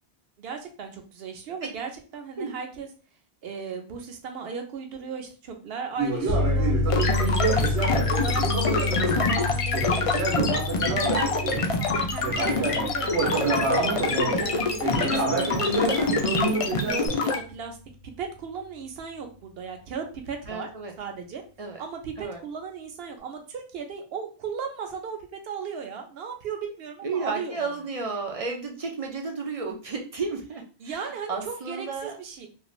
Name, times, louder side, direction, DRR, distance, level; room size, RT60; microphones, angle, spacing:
voice 1, 0.4-2.9 3.4-6.8 7.2-14.6 15.0-15.9 16.5-17.8 18.0-20.7 21.0-21.4 21.8-27.6 30.8-32.5, right 6 dB, 70° right, 5 dB, 0.8 m, -37 dB
Conversation, 6.0-11.7 12.2-17.1, right 3 dB, 90° right, 1.1 m, -28 dB
sound 1, 6.3-16.8, left 2 dB, 45° left, 0.8 m, -30 dB
sound 2, 6.9-17.4, left 4 dB, 60° left, 0.3 m, -26 dB
voice 2, 7.4-7.8 14.1-14.7 15.3-15.5 20.5-20.9 21.6-21.8 22.2-22.4 27.0-31.0 31.3-32.1, right 4 dB, 50° right, 2 dB, 0.4 m, -33 dB
2.5 x 2.4 x 3.0 m, 0.38 s
omnidirectional pair, 1.1 m